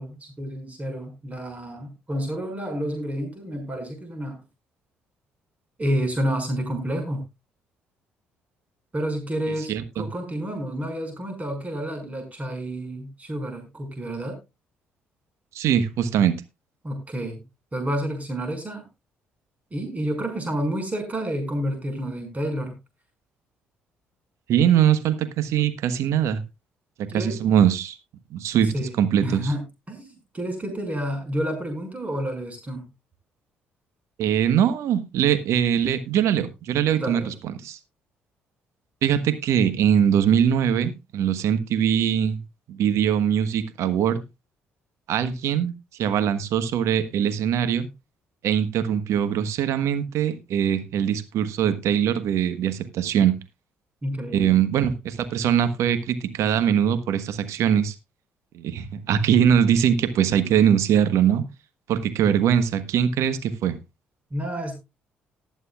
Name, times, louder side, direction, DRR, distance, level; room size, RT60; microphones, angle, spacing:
voice 1, 0.0-4.4 5.8-7.2 8.9-14.4 16.8-17.4 17.7-18.9 19.7-22.8 27.1-27.4 28.7-32.9 36.9-37.3 54.0-54.6 64.3-64.8, equal, 25° right, 5.8 m, -30 dB
voice 2, 9.7-10.1 15.5-16.3 24.5-26.4 27.1-28.0 28.3-29.5 34.2-37.3 37.6-37.8 39.0-42.4 42.7-44.2 45.1-45.7 46.0-47.9 48.4-53.3 54.3-57.9 58.5-61.4 61.9-63.8, right 9 dB, 65° right, 1.3 m, -22 dB
19.0 x 8.2 x 2.4 m
hypercardioid pair, 50°, 5 cm